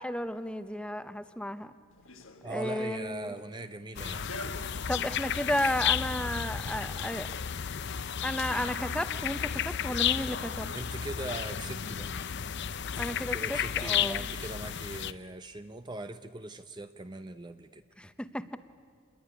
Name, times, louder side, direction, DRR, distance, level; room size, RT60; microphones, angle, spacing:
voice 1, 0.0-1.7 2.5-3.3 4.9-7.3 8.2-10.7 13.0-14.2 18.0-18.6, left 1 dB, 5° left, 11 dB, 0.8 m, -33 dB
Run, 1.9-9.6, left 2 dB, 70° left, 1.6 m, -49 dB
voice 2, 2.4-4.3 10.7-12.1 13.2-17.8, right 2 dB, 20° right, 9 dB, 0.6 m, -40 dB
sound 1, 4.0-15.1, left 9 dB, 50° left, 0.6 m, -33 dB
28.0 x 21.0 x 9.9 m, 2.1 s
head